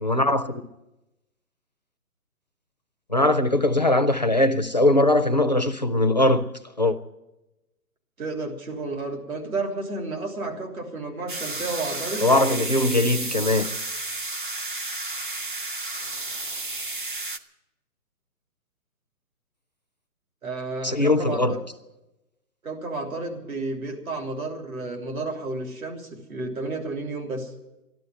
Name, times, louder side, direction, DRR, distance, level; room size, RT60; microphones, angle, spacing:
voice 1, 0.0-0.6 3.1-6.5 6.8-7.0 12.2-13.7 20.8-21.5, left 1 dB, 30° left, 0.5 m, -21 dB
voice 2, 8.2-12.3 20.4-21.6 22.6-27.5, right 3 dB, 65° right, 3.3 m, -31 dB
sound 1, 11.3-17.4, right 2 dB, 35° right, 0.5 m, -32 dB
13.5 x 11.5 x 9.0 m
hypercardioid pair, 165°, 46 cm